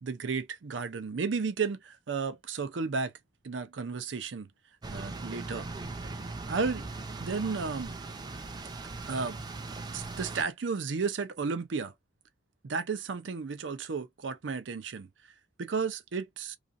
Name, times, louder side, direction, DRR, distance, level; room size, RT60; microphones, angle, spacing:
voice 1, 0.0-3.1 3.4-4.5 4.9-5.7 6.5-6.9 7.2-7.9 9.1-9.4 9.9-11.9 12.6-15.1 15.6-16.6, right 5 dB, 85° right, 0.5 m, -33 dB
sound 1, 4.8-10.4, right 3 dB, 20° right, 0.4 m, -39 dB
2.5 x 2.4 x 2.5 m
head